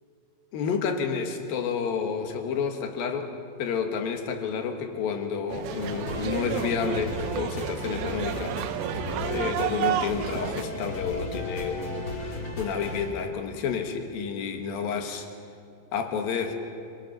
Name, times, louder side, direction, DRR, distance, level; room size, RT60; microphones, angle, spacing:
voice 1, 0.5-3.3 3.6-8.6 9.2-15.3 15.9-16.5, left 6 dB, 60° left, 4 dB, 2.9 m, -30 dB
sound 1, 5.5-10.6, right 11 dB, 80° right, 2.5 m, -31 dB
sound 2, 5.7-13.1, left 1 dB, 30° left, 2.1 m, -35 dB
25.0 x 25.0 x 5.8 m, 2.5 s
omnidirectional pair, 5.6 m